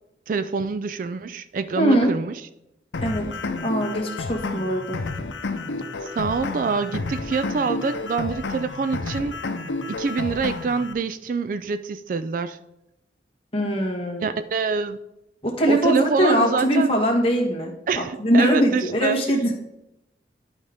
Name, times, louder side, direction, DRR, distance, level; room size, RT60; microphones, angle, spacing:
voice 1, 0.3-2.4 6.0-9.4 9.9-12.6 14.2-15.0 15.7-17.0 17.9-19.2, right 4 dB, 45° right, 12 dB, 0.3 m, -26 dB
voice 2, 1.8-2.1 3.0-3.3 3.6-5.0 13.5-14.3 15.4-19.5, equal, 30° left, -1 dB, 1.5 m, -21 dB
sound 1, 2.9-10.9, left 3 dB, 90° left, 0.7 m, -31 dB
11.0 x 5.0 x 3.5 m, 0.86 s
head